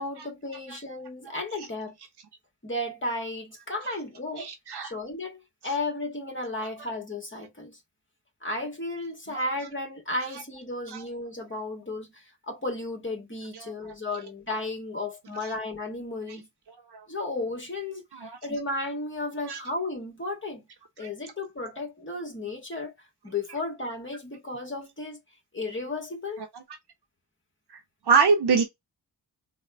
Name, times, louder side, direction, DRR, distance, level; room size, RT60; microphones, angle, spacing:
voice 1, 0.0-2.0 2.6-4.5 4.8-7.8 8.4-16.5 17.1-20.6 21.0-22.9 23.2-25.2 25.5-26.4, left 2 dB, 30° left, 1.7 m, -34 dB
voice 2, 4.4-4.9 9.3-9.4 10.9-11.0 13.5-13.9 15.4-15.5 16.9-17.0 18.1-18.4 19.5-19.6 21.0-21.1 26.4-26.6 28.1-28.6, right 5 dB, 70° right, 0.9 m, -25 dB
4.1 x 2.4 x 3.5 m
cardioid pair, 55°, 41 cm